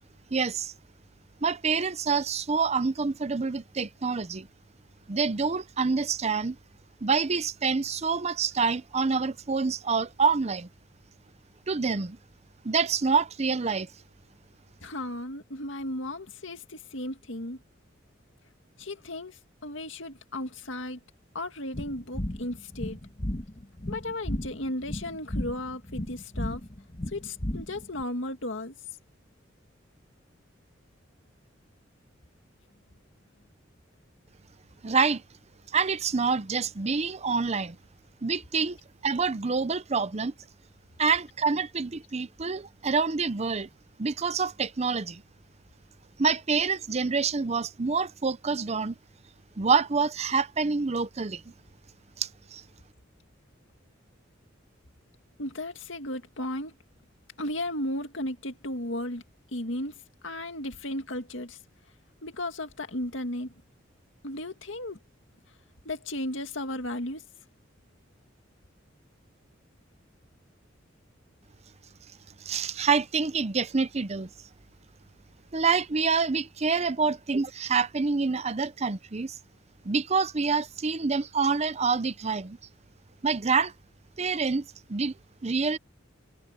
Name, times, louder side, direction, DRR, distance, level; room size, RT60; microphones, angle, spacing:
voice 1, 0.3-0.7 1.4-4.5 5.1-6.6 7.0-10.7 11.7-12.2 12.6-13.9 34.8-35.2 35.7-37.8 38.2-38.8 39.0-40.3 41.0-43.7 44.0-45.2 46.2-49.0 49.6-51.4 52.2-52.6 72.4-74.3 75.5-79.4 79.8-82.6 83.2-83.7 84.2-85.1 85.4-85.8, right 5 dB, 35° right, 0.7 m, -27 dB
voice 2, 14.8-17.6 18.8-21.0 21.3-23.0 23.9-26.6 27.1-28.7 55.4-56.7 57.4-59.2 59.5-59.9 60.2-61.6 62.2-63.6 64.2-65.0 65.8-67.2, left 1 dB, 75° left, 2.2 m, -35 dB
sound 1, 21.7-28.0, left 1 dB, 30° left, 1.7 m, -34 dB
head